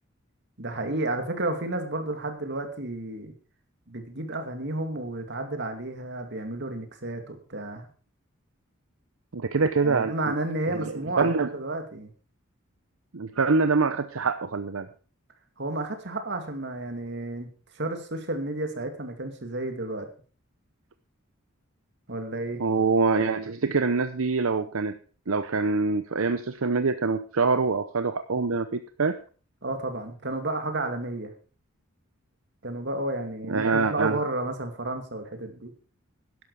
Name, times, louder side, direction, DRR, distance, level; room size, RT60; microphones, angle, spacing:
voice 1, 0.6-3.3 3.9-7.9 9.8-12.1 15.6-17.5 17.7-20.1 22.1-22.6 29.6-31.3 32.6-35.7, right 2 dB, 55° right, 6 dB, 2.5 m, -32 dB
voice 2, 9.3-10.3 10.7-11.5 13.1-14.9 22.6-25.0 25.3-29.1 33.5-34.2, right 4 dB, 75° right, 10 dB, 0.8 m, -25 dB
12.5 x 11.0 x 4.9 m, 0.39 s
head